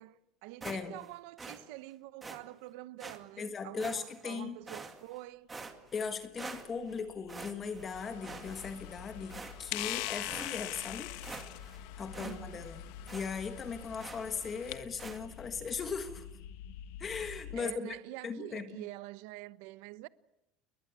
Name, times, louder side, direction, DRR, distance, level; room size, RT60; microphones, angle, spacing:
voice 1, 0.0-5.5 12.2-12.6 17.5-20.1, right 18 dB, 65° right, 1.0 m, -46 dB
voice 2, 0.6-1.0 3.4-4.6 5.9-11.1 12.0-12.8 13.1-16.3 17.0-18.0 18.2-18.6, left 5 dB, 20° left, 1.6 m, -38 dB
sound 1, 0.6-1.1 1.4-1.6 2.2-2.4 3.0-3.2 3.8-4.3 4.7-5.2 5.5-6.1 6.4-7.0 7.3-7.9 8.2-8.9 9.3-9.8 10.3-10.5 10.9-11.0 11.2-11.8 12.1-12.4 12.6-12.7 13.1-13.3 14.0-14.3 15.0-15.2, right 4 dB, 10° right, 2.1 m, -46 dB
sound 2, 5.6-17.6, left 8 dB, 80° left, 2.1 m, -50 dB
sound 3, 7.9-14.8, left 17 dB, 60° left, 1.4 m, -43 dB
30.0 x 21.5 x 8.3 m
cardioid pair, 180°, 0 cm